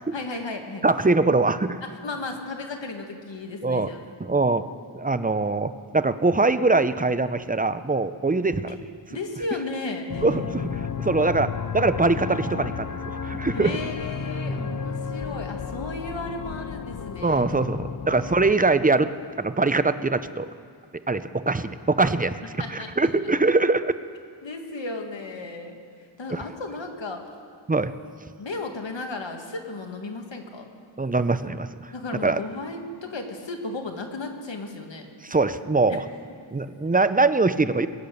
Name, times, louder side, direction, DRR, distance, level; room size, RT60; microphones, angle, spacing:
voice 1, 0.0-0.8 1.8-4.0 8.7-8.8 9.1-10.2 13.2-17.4 17.8-17.9 22.6-23.2 24.4-25.8 26.2-27.3 28.4-30.7 31.9-35.1 35.9-36.0, left 3 dB, 65° left, 4 dB, 1.8 m, -34 dB
voice 2, 0.8-1.8 3.6-3.9 4.2-4.7 4.9-8.6 10.2-13.7 14.5-14.7 17.2-19.1 19.4-20.5 21.1-22.3 22.7-23.9 26.3-26.4 27.7-27.9 31.0-31.9 32.2-32.4 35.2-36.0 36.5-37.9, right 3 dB, 20° right, 12 dB, 0.5 m, -23 dB
sound 1, 10.1-18.6, left 6 dB, 40° left, 0.6 m, -32 dB
21.5 x 8.8 x 6.6 m, 2.3 s
wide cardioid pair, 70°, 48 cm